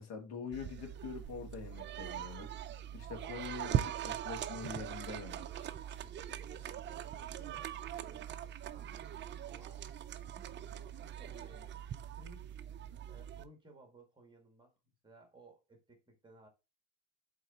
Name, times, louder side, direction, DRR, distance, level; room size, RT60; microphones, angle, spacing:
voice 1, 0.0-2.5 2.9-5.6, left 6 dB, 75° left, 2.2 m, -45 dB
sound 1, 0.5-13.4, right 10 dB, 30° right, 0.4 m, -41 dB
voice 2, 5.8-9.8 10.5-12.6 13.0-14.7 15.0-16.5, right 2 dB, 10° right, 1.7 m, -60 dB
7.9 x 3.8 x 4.2 m
cardioid pair, 140°, 42 cm